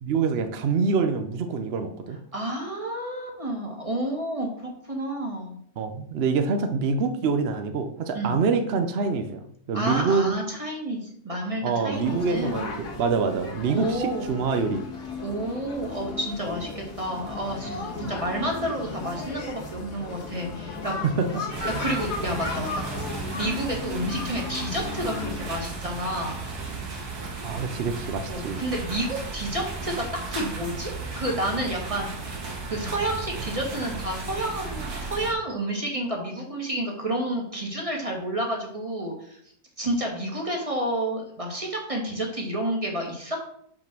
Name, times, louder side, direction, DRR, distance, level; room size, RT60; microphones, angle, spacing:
voice 1, 0.0-2.2 5.8-10.3 11.6-14.8 18.0-18.1 21.0-21.4 27.4-28.6, right 5 dB, 55° right, 7 dB, 0.7 m, -26 dB
voice 2, 2.3-5.5 8.1-8.4 9.7-12.6 13.7-14.3 15.2-20.9 21.8-26.4 28.3-30.0 30.3-32.1 32.7-39.4 39.8-43.4, right 1 dB, 20° right, 0 dB, 1.7 m, -30 dB
sound 1, 11.9-25.6, left 3 dB, 80° left, 2.2 m, -35 dB
sound 2, 21.5-35.3, right 3 dB, 75° right, 2.2 m, -35 dB
5.8 x 5.1 x 6.0 m, 0.66 s
omnidirectional pair, 1.7 m